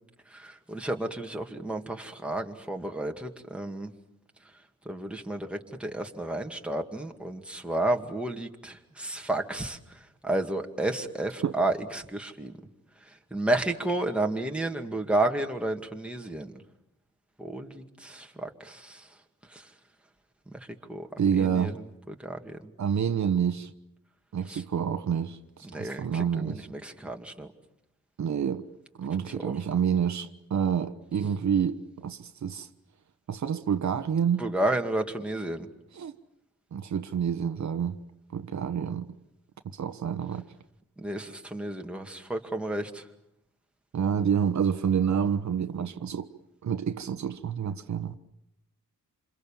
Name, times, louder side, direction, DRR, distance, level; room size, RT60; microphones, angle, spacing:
voice 1, 0.3-3.9 4.9-9.8 10.2-12.5 13.3-16.5 17.4-19.0 19.5-19.6 20.5-20.6 20.9-21.1 21.4-21.7 22.1-22.6 24.5-24.6 25.6-27.5 29.3-29.5 34.4-35.7 41.0-43.0, right 1 dB, 5° right, 2.2 m, -31 dB
voice 2, 21.2-21.8 22.8-23.7 24.3-26.6 28.2-28.6 29.0-32.7 33.3-34.4 35.9-36.1 36.7-38.0 38.3-39.1 39.7-40.4 43.9-46.3 46.6-48.2, right 7 dB, 60° right, 1.2 m, -28 dB
28.0 x 27.5 x 7.3 m
wide cardioid pair, 130°, 33 cm